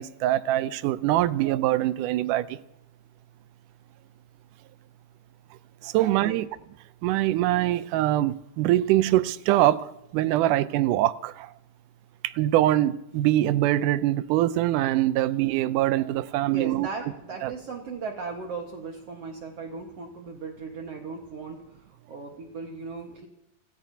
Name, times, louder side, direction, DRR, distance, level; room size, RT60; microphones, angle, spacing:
voice 1, 0.0-2.6 5.8-6.5 7.0-11.5 12.2-16.9 17.4-17.5, right 14 dB, 85° right, 2.2 m, -23 dB
voice 2, 5.9-6.4 16.5-21.6 22.1-23.3, right 4 dB, 55° right, 2.3 m, -37 dB
29.5 x 15.0 x 2.8 m
omnidirectional pair, 3.6 m